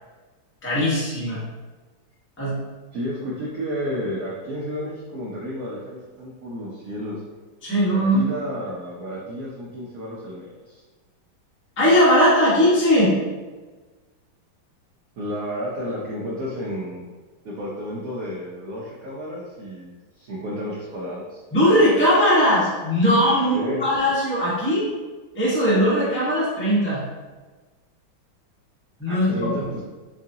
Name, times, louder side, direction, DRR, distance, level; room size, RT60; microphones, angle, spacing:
voice 1, 0.6-1.4 2.4-2.6 7.6-8.3 11.8-13.1 21.5-24.9 25.3-27.0 29.0-29.5, equal, 10° left, -9 dB, 0.6 m, -19 dB
voice 2, 2.9-7.2 7.9-10.8 15.2-17.1 17.4-21.4 23.5-23.8 29.1-29.8, equal, 75° right, -5 dB, 0.8 m, -31 dB
4.7 x 2.4 x 2.7 m, 1.3 s
omnidirectional pair, 2.2 m